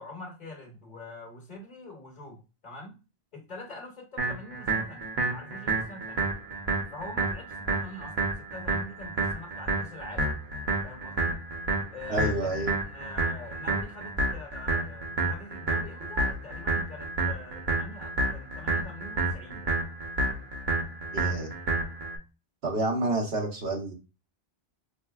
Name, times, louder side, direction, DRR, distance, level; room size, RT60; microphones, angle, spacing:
voice 1, 0.0-2.4 2.6-3.0 3.3-6.3 6.9-10.3 10.8-11.4 11.9-19.8, left 2 dB, 45° left, 0 dB, 0.9 m, -44 dB
sound 1, 4.2-22.2, right 2 dB, 50° right, 0.9 m, -30 dB
voice 2, 12.1-12.7 21.1-21.5 22.6-23.9, right 2 dB, 75° right, 1 dB, 1.2 m, -29 dB
4.1 x 2.7 x 2.3 m, 0.30 s
omnidirectional pair, 1.1 m